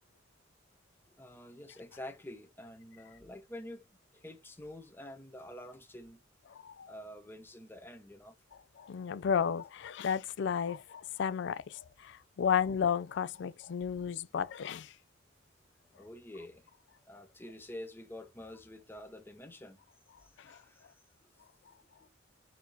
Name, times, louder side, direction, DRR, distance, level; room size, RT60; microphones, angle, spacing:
voice 1, 1.1-3.9 4.1-6.2 6.9-8.4 15.9-16.7 17.1-19.8 20.2-21.3 22.0-22.1, left 1 dB, 10° left, 0.7 m, -48 dB
voice 2, 6.6-6.9 8.8-14.9 20.4-20.6, left 7 dB, 65° left, 0.4 m, -33 dB
4.3 x 2.7 x 4.4 m
head